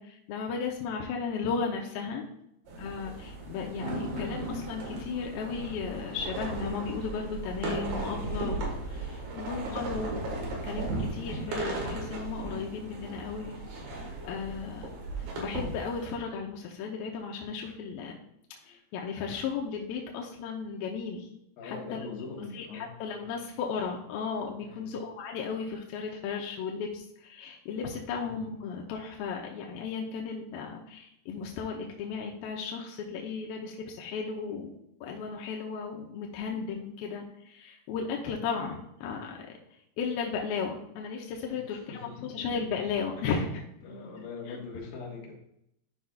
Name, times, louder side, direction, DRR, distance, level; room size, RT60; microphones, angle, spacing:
voice 1, 0.0-2.3 2.8-14.9 15.4-18.2 18.6-21.3 21.6-22.0 22.5-34.7 35.0-39.5 40.0-43.6 44.5-44.6, left 5 dB, 80° left, 0 dB, 2.2 m, -35 dB
sound 1, 2.7-16.2, right 2 dB, 70° right, 3.5 m, -36 dB
voice 2, 21.6-22.9 24.6-24.9 30.5-30.6 36.1-36.4 41.5-42.3 43.2-43.4 43.8-45.3, left 4 dB, 65° left, -1 dB, 3.0 m, -43 dB
12.0 x 5.6 x 2.4 m, 0.77 s
omnidirectional pair, 4.9 m